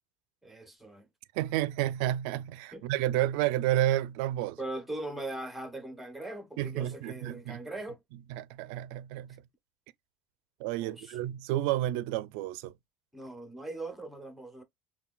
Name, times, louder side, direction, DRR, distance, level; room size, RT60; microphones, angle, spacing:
voice 1, 0.4-1.1 2.7-2.9 4.6-8.0 10.8-11.2 13.1-14.6, right 2 dB, 5° right, 1.0 m, -40 dB
voice 2, 1.3-4.6 6.6-7.6 8.3-9.4 10.6-12.7, right 13 dB, 75° right, 0.4 m, -30 dB
5.8 x 2.3 x 2.3 m
cardioid pair, 150°, 4 cm